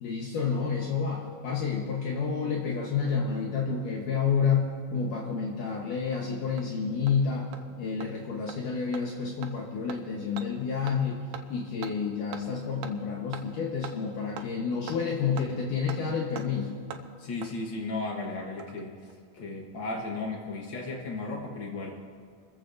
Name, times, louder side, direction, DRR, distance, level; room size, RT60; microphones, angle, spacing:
voice 1, 0.0-7.5 7.8-11.2 11.5-16.7, left 6 dB, 65° left, -1 dB, 2.5 m, -29 dB
Hammer, 5.6-5.7 6.1-6.2 6.6-6.7 7.1-7.2 7.5-7.6 8.0-8.1 8.5-8.6 8.9-9.0 9.4-9.5 9.9-10.0 10.4-10.5 10.9-11.0 11.3-11.4 11.8-11.9 12.3-12.4 12.8-12.9 13.3-13.4 13.8-14.0 14.4-14.5 14.9-15.0 15.4-15.5 15.9-16.0 16.4-16.5 16.9-17.0 17.4-17.5 18.4-18.8 19.1-19.2, right 8 dB, 85° right, 2.6 m, -41 dB
voice 2, 17.2-21.9, left 3 dB, 90° left, -1 dB, 1.0 m, -35 dB
28.5 x 14.5 x 2.6 m, 2.2 s
omnidirectional pair, 4.4 m